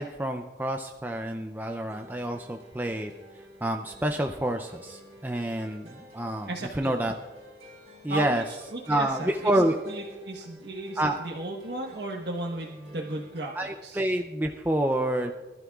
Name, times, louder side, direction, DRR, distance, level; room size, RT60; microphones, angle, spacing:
voice 1, 0.0-3.1 3.6-6.5 6.7-7.1 8.0-8.4 8.9-9.8 11.0-11.2 13.6-15.3, right 1 dB, 10° right, 4 dB, 0.4 m, -28 dB
sound 1, 1.9-13.4, equal, 35° right, 4.6 m, -50 dB
voice 2, 6.5-6.9 8.1-14.0, right 2 dB, 70° right, -1 dB, 1.2 m, -35 dB
23.5 x 12.5 x 2.4 m, 1.3 s
head